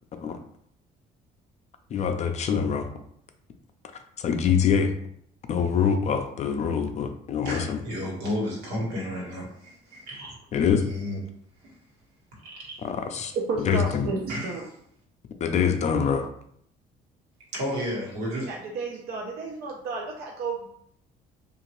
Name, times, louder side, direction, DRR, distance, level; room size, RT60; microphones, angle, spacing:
voice 1, 1.9-2.9 4.2-4.9 5.5-7.8 10.5-10.8 12.8-13.3 13.6-14.1 15.4-16.3, left 7 dB, 40° left, 6 dB, 0.4 m, -24 dB
voice 2, 7.4-10.4 10.8-11.2 11.6-11.7 12.4-12.8 14.3-14.6 17.5-18.5, left 1 dB, 85° right, -3 dB, 1.3 m, -32 dB
voice 3, 13.3-14.6 18.3-20.7, right 4 dB, 65° right, -1 dB, 0.5 m, -32 dB
2.8 x 2.4 x 3.0 m, 0.68 s
cardioid pair, 110°, 17 cm